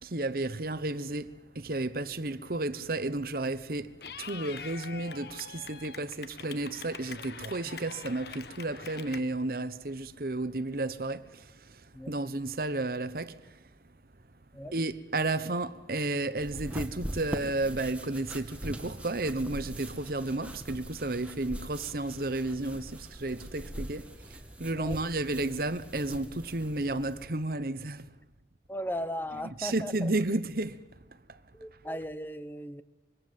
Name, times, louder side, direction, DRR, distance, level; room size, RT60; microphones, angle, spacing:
voice 1, 0.0-13.6 14.7-28.1 29.4-30.8 31.3-31.4, right 2 dB, 50° right, 1.0 m, -32 dB
Clapping / Cheering, 4.0-9.2, left 6 dB, 60° left, 1.2 m, -44 dB
sound 1, 16.4-27.2, right 1 dB, 5° right, 2.0 m, -42 dB
voice 2, 28.7-30.1 31.5-32.8, equal, 10° left, 0.9 m, -37 dB
26.0 x 24.0 x 7.5 m
head